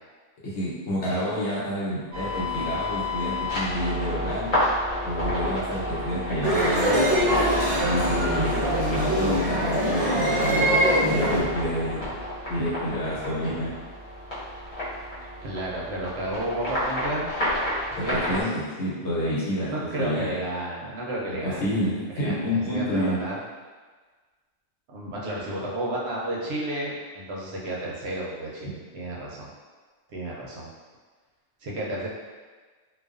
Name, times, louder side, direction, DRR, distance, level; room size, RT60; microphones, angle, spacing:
voice 1, 0.4-4.6 5.0-7.1 7.8-12.1 12.5-13.8 18.0-20.4 21.4-23.2, equal, 75° left, -8 dB, 1.1 m, -29 dB
sound 1, 2.1-18.4, left 1 dB, 45° left, 0.9 m, -30 dB
sound 2, 6.4-11.4, equal, 40° right, 0.3 m, -23 dB
voice 2, 15.4-17.3 17.9-18.4 19.7-21.6 22.1-23.4 24.9-29.5 30.1-30.7 31.6-32.1, right 1 dB, 70° right, -4 dB, 0.8 m, -32 dB
2.4 x 2.3 x 2.4 m, 1.4 s
omnidirectional pair, 1.2 m